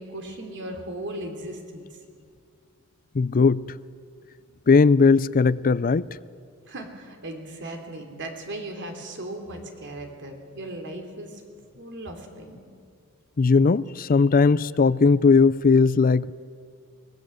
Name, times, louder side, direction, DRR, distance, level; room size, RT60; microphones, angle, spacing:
voice 1, 0.0-1.8 6.6-11.4 11.7-12.6, right 1 dB, 55° right, 3.1 m, -37 dB
voice 2, 3.1-3.7 4.7-6.1 13.4-16.3, left 4 dB, 40° left, 0.5 m, -18 dB
25.0 x 18.0 x 7.7 m
head